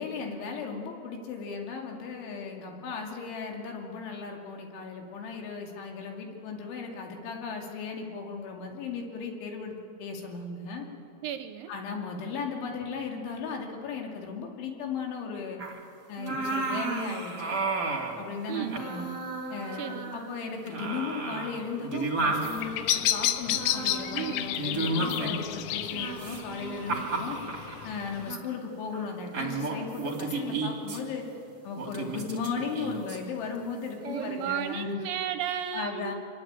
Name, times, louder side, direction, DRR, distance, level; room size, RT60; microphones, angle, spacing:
voice 1, 0.0-10.9 11.7-15.6 16.1-17.5 18.2-19.1 19.5-27.4 27.8-31.3 31.6-35.0 35.7-36.1, left 5 dB, 65° left, 1 dB, 4.8 m, -36 dB
voice 2, 11.2-11.7 18.5-18.8 19.7-20.1 24.1-24.5 34.1-36.1, right 10 dB, 80° right, 9 dB, 2.9 m, -34 dB
sound 1, 15.6-15.8 16.2-18.2 18.5-20.4 20.7-22.6 23.5-25.5 25.9-27.9 28.3-28.5 28.9-29.1 29.3-31.0 31.8-33.2 34.0-34.4, right 3 dB, 30° right, 2.1 m, -33 dB
Bird vocalization bird call bird song, 22.3-28.3, left 12 dB, 85° left, 3.5 m, -32 dB
26.0 x 21.5 x 8.9 m, 2.6 s
omnidirectional pair, 5.9 m